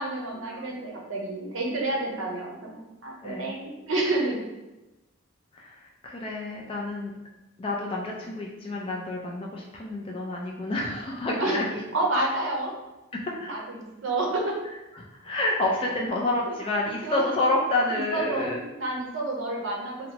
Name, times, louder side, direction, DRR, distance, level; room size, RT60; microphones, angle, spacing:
voice 1, 0.0-4.4 11.4-11.6 11.9-12.7 13.4-14.5 16.5-16.6 17.0-17.2 17.9-18.5 18.8-20.1, right 2 dB, 70° right, -1 dB, 0.7 m, -29 dB
voice 2, 3.2-3.5 5.5-7.1 7.6-11.6 13.1-13.5 15.0-18.6, left 2 dB, 25° left, -2 dB, 0.3 m, -29 dB
2.8 x 2.1 x 2.8 m, 1.0 s
head